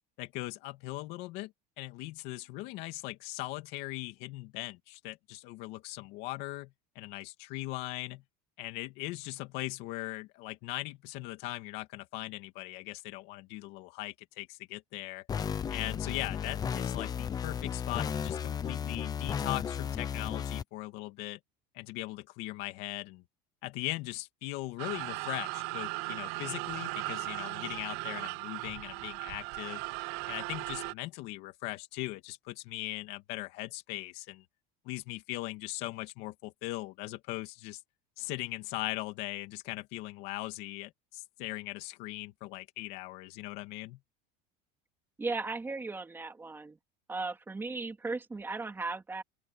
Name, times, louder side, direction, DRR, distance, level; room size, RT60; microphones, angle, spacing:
voice 1, 0.2-8.2 8.6-15.3 15.7-21.4 21.7-23.2 23.6-29.8 30.3-34.4 34.8-37.8 38.2-44.0, left 19 dB, 60° left, 2.6 m, -39 dB
sound 1, 15.3-20.6, left 8 dB, 20° left, 0.8 m, -34 dB
sound 2, 24.8-30.9, right 26 dB, 55° right, 0.5 m, -37 dB
voice 2, 45.2-46.8 47.1-49.2, right 3 dB, 10° right, 3.1 m, -36 dB
open air
cardioid pair, 165°, 19 cm